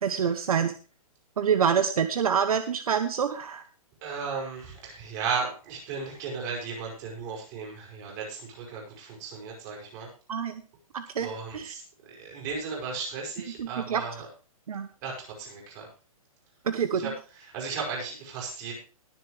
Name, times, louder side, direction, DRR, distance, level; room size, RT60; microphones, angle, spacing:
voice 1, 0.0-0.7 1.4-3.6 10.3-10.5 10.9-11.3 11.5-11.7 13.6-14.0 14.7-14.9 16.7-17.1, right 7 dB, 75° right, 10 dB, 1.1 m, -26 dB
voice 2, 4.0-10.1 11.2-11.8 12.2-14.3 15.0-15.9 16.9-18.7, right 5 dB, 30° right, -1 dB, 5.3 m, -35 dB
20.5 x 7.2 x 3.3 m, 0.36 s
hypercardioid pair, 165°, 19 cm